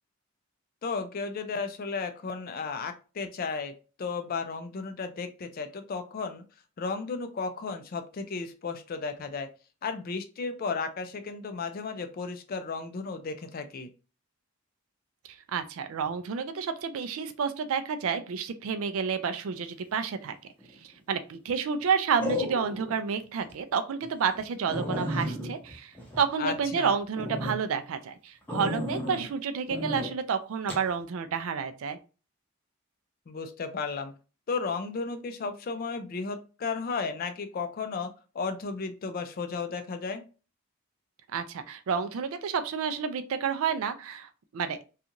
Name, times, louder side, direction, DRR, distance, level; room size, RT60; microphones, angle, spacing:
voice 1, 0.8-3.7 4.0-6.4 6.8-9.5 9.8-13.9 26.4-26.9 33.3-34.1 34.5-38.1 38.3-40.2, left 4 dB, 40° left, 8 dB, 0.4 m, -34 dB
voice 2, 15.5-20.4 20.8-32.0 41.3-44.8, right 6 dB, 65° right, 9 dB, 0.4 m, -30 dB
sound 1, 20.6-21.0 22.2-23.0 23.4-23.5 24.0-24.1 24.4-24.5 24.7-26.7 27.1-27.6 28.5-29.3 29.7-30.1 30.7-30.9, left 1 dB, 5° left, 0.7 m, -33 dB
2.5 x 2.4 x 2.8 m, 0.33 s
head